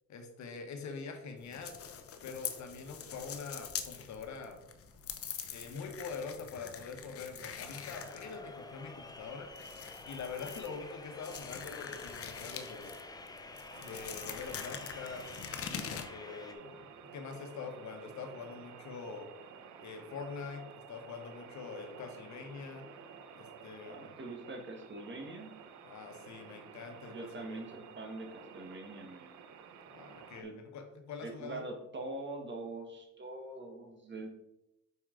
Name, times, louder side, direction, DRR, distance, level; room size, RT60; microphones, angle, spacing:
voice 1, 0.1-1.8 2.2-4.6 5.5-9.5 10.1-13.0 13.8-15.3 16.1-19.3 19.8-22.8 23.4-24.1 25.8-27.7 29.9-31.6, left 5 dB, 70° left, 4 dB, 1.1 m, -44 dB
sound 1, 1.4-16.0, left 7 dB, 50° left, 0.7 m, -44 dB
sound 2, 7.6-16.5, left 2 dB, 15° left, 0.6 m, -49 dB
sound 3, 13.7-30.4, right 6 dB, 70° right, 0.7 m, -52 dB
voice 2, 23.8-25.5 27.1-29.3 30.4-30.6 31.2-34.3, right 2 dB, 40° right, 3 dB, 1.4 m, -43 dB
5.4 x 4.6 x 3.8 m, 0.88 s
cardioid pair, 90°, 30 cm